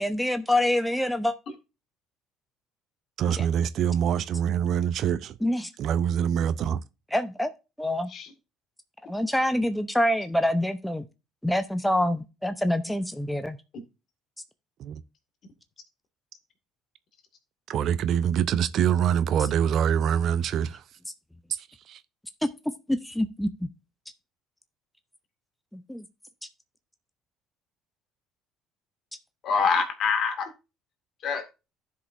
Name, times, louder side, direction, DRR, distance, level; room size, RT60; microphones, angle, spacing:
voice 1, 0.0-1.4 3.4-3.5 5.4-5.7 7.1-7.5 7.8-8.1 9.1-11.1 11.4-13.6 22.9-23.7 25.9-26.0, left 1 dB, 5° left, 0.7 m, -26 dB
voice 2, 3.2-5.4 5.8-6.8 14.8-15.0 17.7-20.8 21.5-22.0, right 9 dB, 55° right, 0.5 m, -25 dB
voice 3, 29.4-30.5 31.2-31.4, left 5 dB, 55° left, 2.1 m, -25 dB
15.0 x 5.1 x 2.6 m
hypercardioid pair, 60°, 0 cm